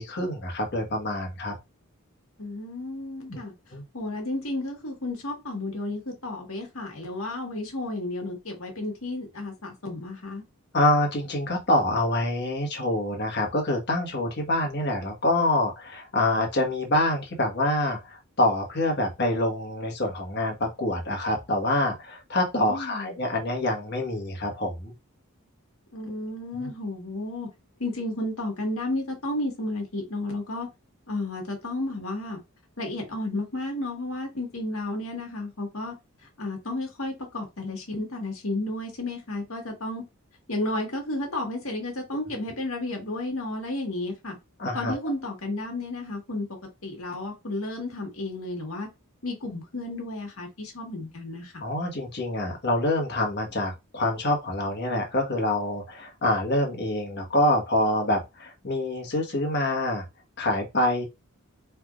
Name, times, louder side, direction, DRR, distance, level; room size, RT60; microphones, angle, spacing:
voice 1, 0.0-1.5 3.3-3.4 3.7-3.8 10.7-24.9 26.5-26.7 44.6-45.0 51.6-60.0 60.4-61.0, left 1 dB, 50° left, 1.4 m, -26 dB
voice 2, 2.4-3.5 3.9-10.4 22.6-23.2 25.9-27.5 27.8-30.7 31.1-32.4 32.8-35.9 36.4-40.0 40.5-44.4 44.7-46.5 46.8-48.9 49.2-51.5, left 2 dB, 70° left, 1.7 m, -32 dB
4.5 x 3.4 x 2.4 m
head